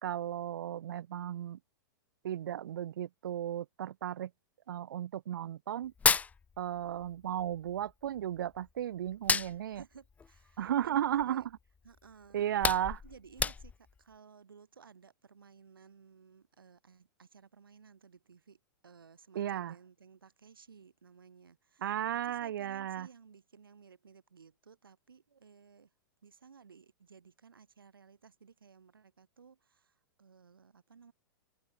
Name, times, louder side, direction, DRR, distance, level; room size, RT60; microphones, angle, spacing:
voice 1, 0.0-1.6 2.2-4.3 4.7-5.9 6.6-9.8 10.6-11.4 12.3-13.0 19.3-19.7 21.8-23.1, right 11 dB, 70° right, 0.9 m, -34 dB
Hands, 5.8-7.1 7.4-8.7 9.1-11.4 11.8-12.0 12.3-14.0, left 5 dB, 15° left, 0.7 m, -32 dB
voice 2, 9.4-11.5 11.8-12.6 13.0-22.0 22.2-25.9 26.2-31.1, right 6 dB, 85° right, 5.8 m, -57 dB
hypercardioid pair, 110°, 11 cm